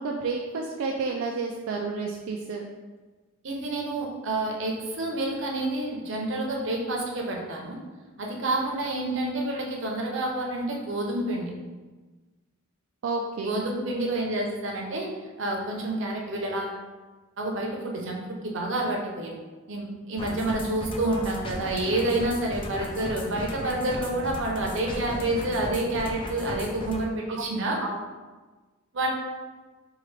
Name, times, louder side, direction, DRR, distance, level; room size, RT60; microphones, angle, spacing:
voice 1, 0.0-2.6 13.0-13.6 27.3-27.4 27.8-28.0, right 4 dB, 85° right, 0 dB, 0.4 m, -30 dB
voice 2, 3.4-7.8 8.2-11.5 13.4-15.1 15.4-16.8 17.4-19.3 19.7-27.8 28.9-29.1, right 2 dB, 65° right, -1 dB, 0.7 m, -28 dB
sound 1, 20.2-27.0, left 1 dB, 25° left, 0.4 m, -36 dB
4.7 x 2.4 x 3.2 m, 1.3 s
head